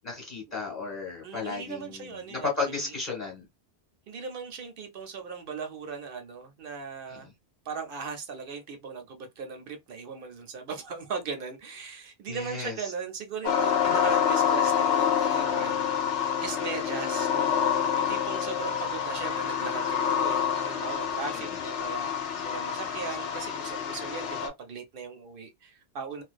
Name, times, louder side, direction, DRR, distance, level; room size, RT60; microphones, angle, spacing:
voice 1, 0.0-3.4 7.1-7.2 12.3-12.7 13.9-14.0, left 4 dB, 40° left, 1.0 m, -34 dB
voice 2, 1.2-3.0 4.1-7.3 7.7-15.9 16.4-22.1 22.4-26.2, right 5 dB, 60° right, 0.6 m, -38 dB
sound 1, 13.4-24.5, left 8 dB, 90° left, 0.9 m, -27 dB
2.3 x 2.2 x 2.4 m
omnidirectional pair, 1.2 m